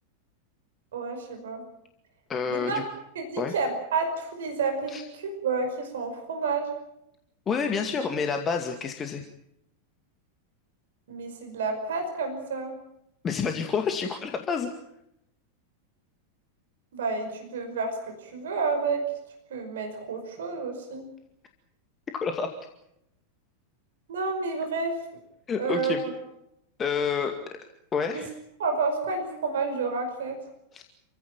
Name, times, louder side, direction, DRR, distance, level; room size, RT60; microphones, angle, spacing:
voice 1, 0.9-1.6 2.5-2.9 3.2-6.7 11.1-12.7 16.9-19.0 19.5-21.1 24.1-25.0 25.6-26.0 28.1-28.2 28.6-30.4, right 4 dB, 60° right, 5 dB, 5.5 m, -30 dB
voice 2, 2.3-2.8 3.4-3.5 4.9-5.0 7.5-9.3 13.2-14.7 22.1-22.5 25.5-26.0 26.8-27.4 27.9-28.3 30.7-30.8, left 6 dB, 25° left, 5 dB, 2.2 m, -28 dB
28.5 x 16.0 x 9.1 m, 0.82 s
figure-of-eight pair, 90°, 0 cm